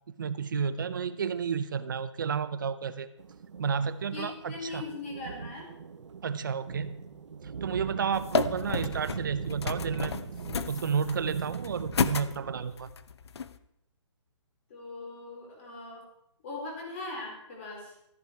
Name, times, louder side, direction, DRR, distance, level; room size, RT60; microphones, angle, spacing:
voice 1, 0.2-3.1 3.6-4.9 6.2-7.0 7.6-10.2 10.7-12.9, right 6 dB, 40° right, 13 dB, 0.8 m, -31 dB
sound 1, 3.2-12.6, right 6 dB, 70° right, 1.2 m, -40 dB
voice 2, 4.1-5.7 14.7-16.0 16.4-17.9, left 3 dB, 25° left, -1 dB, 4.4 m, -40 dB
sound 2, 8.1-13.6, left 5 dB, 60° left, 0.9 m, -33 dB
14.5 x 13.0 x 4.7 m, 0.79 s
hypercardioid pair, 175°, 16 cm